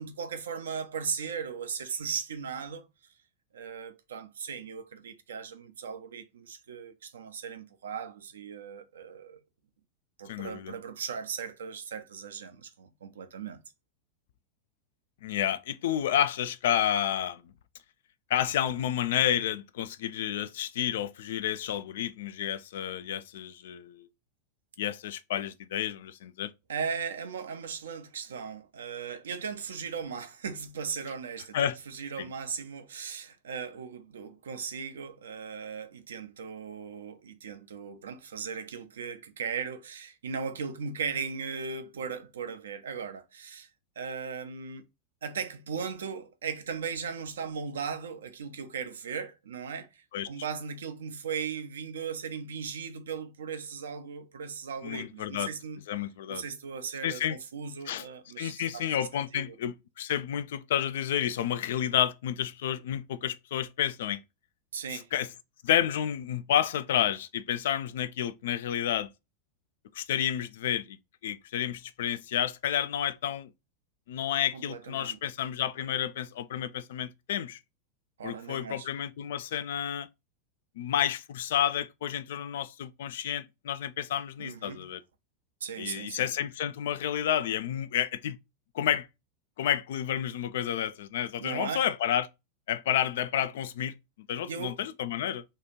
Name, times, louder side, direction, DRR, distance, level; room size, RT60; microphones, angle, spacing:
voice 1, 0.0-2.9 3.5-9.4 10.2-13.6 26.7-43.7 44.0-44.9 45.2-55.8 56.3-59.1 59.3-59.6 64.7-65.1 74.5-75.2 78.2-78.9 84.4-84.9 85.6-86.3 91.4-91.8 94.5-94.9, right 6 dB, 65° right, 0.6 m, -37 dB
voice 2, 10.3-10.7 15.2-17.4 18.3-24.1 24.8-26.5 31.5-31.8 32.2-32.3 50.1-50.3 54.8-55.5 55.9-56.4 57.0-57.4 57.9-58.0 58.4-64.2 64.9-65.3 65.6-69.1 69.9-71.0 71.2-73.5 74.1-77.6 78.2-80.1 80.8-85.0 85.8-88.4 88.7-89.1 89.6-92.3 92.7-93.9 94.3-95.4, left 10 dB, 55° left, 0.3 m, -30 dB
2.8 x 2.4 x 4.2 m
figure-of-eight pair, 90°, 0 cm